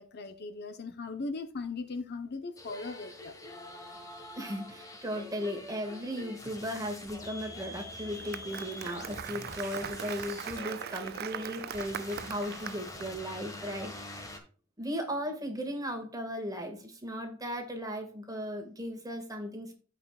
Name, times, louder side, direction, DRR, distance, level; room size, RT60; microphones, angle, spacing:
voice 1, 0.0-3.3, left 3 dB, 55° left, 0.9 m, -38 dB
sound 1, 2.6-14.4, left 1 dB, 15° left, 1.7 m, -45 dB
voice 2, 4.4-14.3 14.8-19.7, equal, 20° right, 2.0 m, -36 dB
Applause, 7.9-13.1, right 10 dB, 50° right, 0.3 m, -41 dB
15.0 x 5.1 x 2.4 m
head